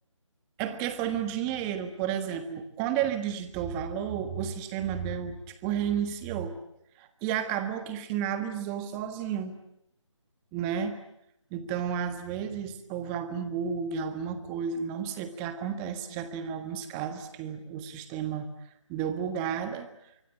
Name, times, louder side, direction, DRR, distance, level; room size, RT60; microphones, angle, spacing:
voice 1, 0.6-6.6 7.0-9.5 10.5-11.0 11.5-18.5 18.9-19.9, right 8 dB, 10° right, 9 dB, 1.5 m, -32 dB
27.0 x 24.0 x 9.0 m, 0.78 s
figure-of-eight pair, 165°, 16 cm